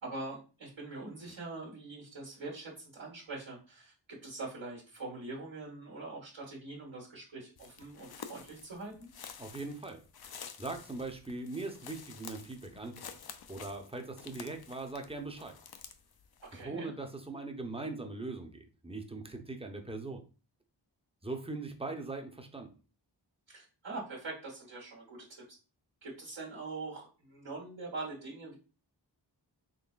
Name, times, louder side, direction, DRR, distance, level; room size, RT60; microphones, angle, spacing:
voice 1, 0.0-9.1 16.5-16.9 23.5-25.6 26.0-28.6, right 3 dB, 85° right, -5 dB, 1.4 m, -43 dB
sound 1, 7.6-16.6, left 7 dB, 55° left, 0.5 m, -50 dB
voice 2, 9.4-10.0 10.6-13.0 13.5-15.6 16.6-20.2 21.2-22.7, right 3 dB, 15° right, 4 dB, 0.7 m, -40 dB
3.9 x 3.2 x 2.4 m, 0.35 s
wide cardioid pair, 45°, 45 cm